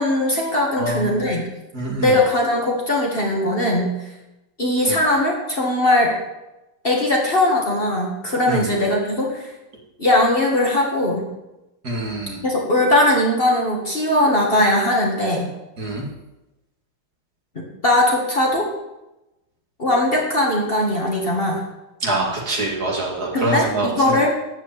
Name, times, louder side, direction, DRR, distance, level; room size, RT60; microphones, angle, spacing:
voice 1, 0.0-1.5 2.0-3.9 4.6-6.2 6.8-9.5 10.0-11.2 12.4-15.5 17.6-18.7 19.8-21.6 23.3-24.3, left 1 dB, 30° left, -1 dB, 2.0 m, -19 dB
voice 2, 0.8-1.3 1.7-2.2 4.9-5.0 8.5-8.7 11.8-12.4 15.8-16.1 22.0-24.3, right 2 dB, 50° right, -1 dB, 2.5 m, -25 dB
13.0 x 5.0 x 8.6 m, 0.96 s
omnidirectional pair, 2.2 m